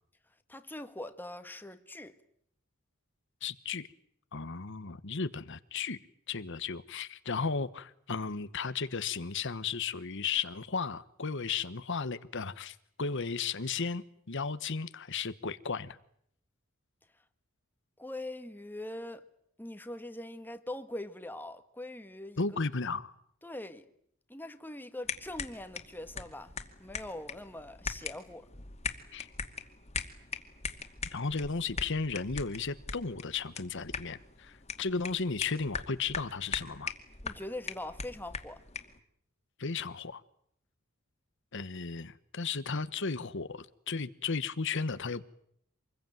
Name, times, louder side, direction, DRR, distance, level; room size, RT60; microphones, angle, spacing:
voice 1, 0.5-2.1 18.0-19.2 19.6-22.4 23.4-23.9 24.3-26.5 26.8-28.5 37.2-38.6, left 1 dB, 10° left, 1.7 m, -42 dB
voice 2, 3.4-3.9 4.3-6.0 6.3-16.0 22.4-23.1 29.1-29.3 31.1-36.9 39.6-40.2 41.5-45.2, left 5 dB, 60° left, 1.2 m, -35 dB
sound 1, 25.0-39.0, left 5 dB, 30° left, 2.4 m, -41 dB
27.0 x 22.0 x 9.2 m
head